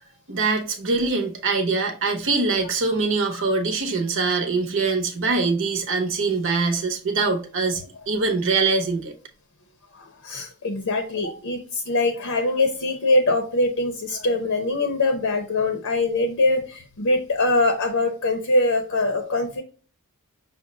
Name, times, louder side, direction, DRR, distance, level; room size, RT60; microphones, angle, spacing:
voice 1, 0.3-7.8 8.1-9.1, right 4 dB, 60° right, 0.8 m, -23 dB
voice 2, 9.9-19.6, left 2 dB, 65° left, 0.7 m, -23 dB
5.9 x 2.1 x 3.8 m
head